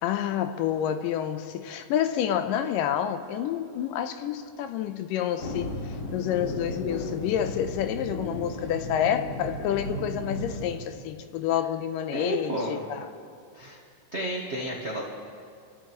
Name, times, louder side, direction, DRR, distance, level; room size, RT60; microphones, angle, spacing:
voice 1, 0.0-5.7 6.1-13.1, left 10 dB, 90° left, 9 dB, 2.3 m, -28 dB
sound 1, 5.4-10.8, left 1 dB, 50° left, 3.1 m, -35 dB
voice 2, 12.1-12.8 13.5-13.8 14.1-15.0, right 1 dB, 85° right, -4 dB, 0.6 m, -31 dB
29.0 x 13.0 x 3.0 m, 2.4 s
omnidirectional pair, 3.8 m